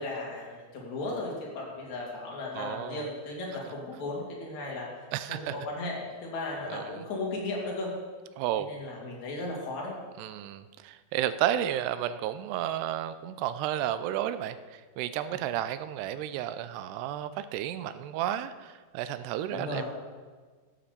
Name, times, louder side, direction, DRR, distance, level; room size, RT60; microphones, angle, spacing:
voice 1, 0.0-4.9 5.3-7.9 8.6-9.9 19.5-19.8, left 2 dB, 50° left, -3 dB, 3.7 m, -36 dB
voice 2, 2.6-3.1 5.1-5.6 6.7-6.9 8.4-8.7 10.2-19.8, right 11 dB, 90° right, 12 dB, 2.7 m, -32 dB
13.0 x 7.7 x 6.8 m, 1.4 s
omnidirectional pair, 4.6 m